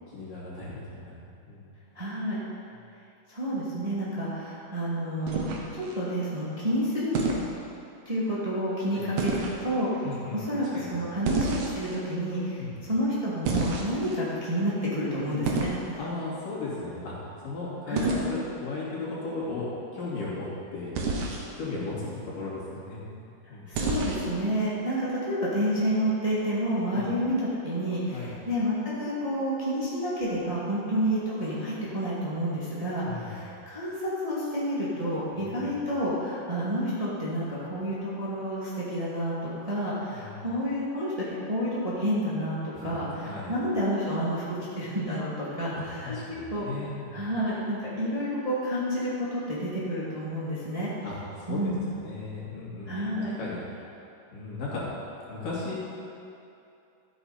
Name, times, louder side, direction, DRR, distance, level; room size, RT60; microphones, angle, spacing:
voice 1, 0.1-1.1 1.5-1.7 8.9-9.1 10.0-10.4 10.7-10.9 12.6-12.8 16.0-17.1 17.4-20.5 20.7-21.1 21.5-24.0 26.9-27.1 28.1-28.3 33.0-33.4 35.3-35.8 40.1-40.5 42.7-43.5 45.7-47.2 51.0-51.6 51.9-53.6 54.3-54.8 55.3-55.8, left 3 dB, 75° left, -8 dB, 4.2 m, -36 dB
voice 2, 1.9-2.4 3.3-7.1 8.1-9.9 10.3-16.0 17.9-18.2 23.4-39.3 39.7-42.6 42.8-44.4 44.8-46.7 47.1-50.9 51.5-51.8 52.9-53.4, equal, 15° right, -9 dB, 1.8 m, -29 dB
sound 1, 5.3-5.9 7.1-7.5 9.2-9.6 11.2-12.0 13.4-14.2 15.4-15.8 18.0-18.2 20.9-21.5 23.7-24.3, right 3 dB, 75° right, 2.5 m, -29 dB
13.0 x 8.9 x 4.2 m, 2.7 s
omnidirectional pair, 3.8 m